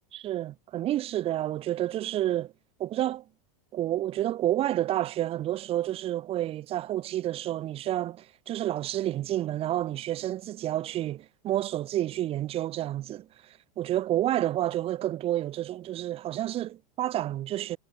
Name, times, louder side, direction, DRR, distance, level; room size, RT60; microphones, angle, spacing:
voice 1, 0.1-2.5 2.8-3.2 3.7-17.8, right 13 dB, 30° right, 0.8 m, -30 dB
supercardioid pair, 130°, 19 cm